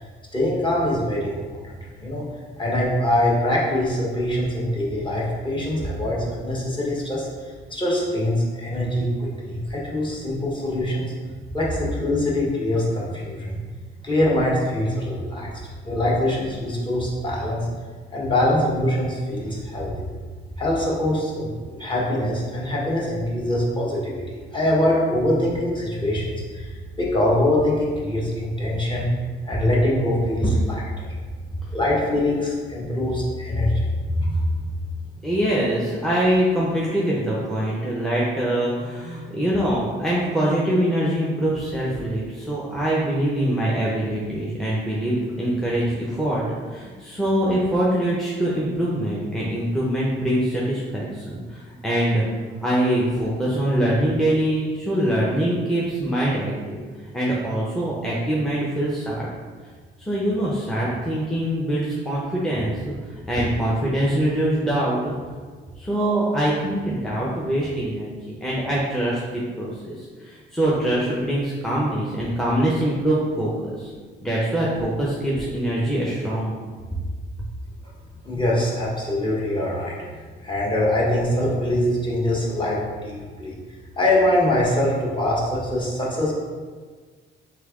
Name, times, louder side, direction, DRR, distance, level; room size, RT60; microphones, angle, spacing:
voice 1, 0.3-2.3 2.6-11.1 11.5-13.6 14.0-17.7 18.1-20.1 20.6-29.1 29.4-31.1 31.7-34.4 78.2-80.0 80.4-83.6 84.0-86.3, left 1 dB, 25° left, -5 dB, 1.2 m, -23 dB
voice 2, 35.2-46.4 46.7-52.2 52.6-56.8 57.1-59.3 60.0-62.9 63.3-65.1 65.8-68.1 68.4-69.2 69.6-73.9 74.2-76.5, right 1 dB, ahead, -7 dB, 0.7 m, -23 dB
3.4 x 3.2 x 3.6 m, 1.5 s
cardioid pair, 90°, 20 cm